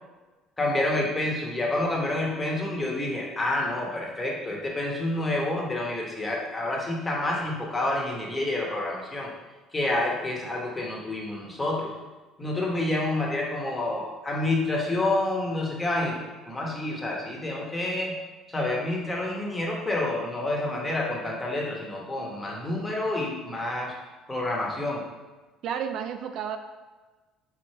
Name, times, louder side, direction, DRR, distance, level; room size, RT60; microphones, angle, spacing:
voice 1, 0.6-9.3 9.7-11.9 12.4-18.1 18.5-23.9 24.3-25.0, left 2 dB, 15° left, -2 dB, 1.1 m, -28 dB
voice 2, 25.6-26.6, right 8 dB, 65° right, 7 dB, 0.3 m, -31 dB
3.9 x 3.1 x 4.3 m, 1.2 s
cardioid pair, 100°, 0 cm